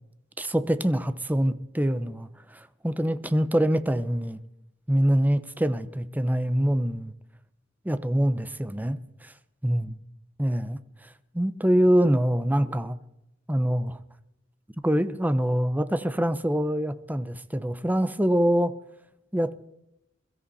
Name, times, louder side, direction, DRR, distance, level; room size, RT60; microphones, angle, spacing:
voice 1, 0.4-4.4 4.9-7.1 7.8-9.3 9.6-9.9 10.4-10.8 11.3-13.0 13.5-14.0 14.8-18.7 19.3-19.5, equal, 10° right, 0.9 m, -24 dB
22.0 x 14.0 x 4.2 m
head